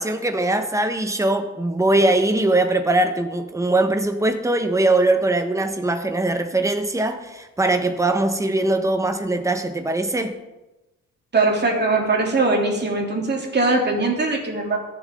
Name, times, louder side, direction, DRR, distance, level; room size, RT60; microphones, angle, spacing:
voice 1, 0.0-10.4, right 2 dB, 10° right, 7 dB, 1.3 m, -21 dB
voice 2, 11.3-14.8, right 3 dB, 35° right, 0 dB, 3.2 m, -21 dB
23.0 x 7.7 x 3.8 m, 1.0 s
cardioid pair, 90°, 30 cm